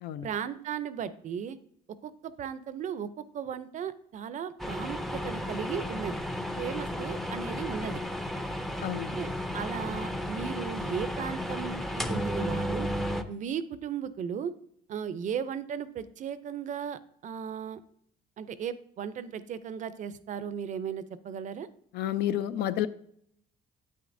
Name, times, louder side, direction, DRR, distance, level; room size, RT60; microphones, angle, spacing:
voice 1, 0.2-1.6 2.0-6.2 6.6-8.0 9.2-12.9 13.3-14.5 14.9-17.8 18.4-21.7, right 8 dB, 45° right, 14 dB, 0.5 m, -36 dB
sound 1, 4.6-13.2, equal, ahead, 0.5 m, -33 dB
voice 2, 8.8-9.2 21.9-22.9, left 11 dB, 80° left, 13 dB, 0.5 m, -30 dB
9.2 x 8.2 x 2.6 m, 0.69 s
cardioid pair, 110°, 17 cm